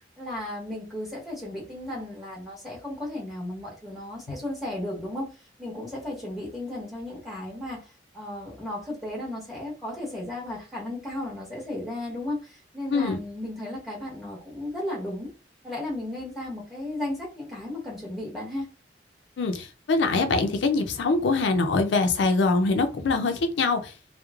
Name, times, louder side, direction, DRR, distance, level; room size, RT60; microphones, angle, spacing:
voice 1, 0.2-5.3 5.6-15.3 15.6-18.7, left 1 dB, ahead, 0.9 m, -35 dB
voice 2, 19.4-23.9, left 3 dB, 70° left, 0.4 m, -23 dB
2.9 x 2.0 x 2.3 m
head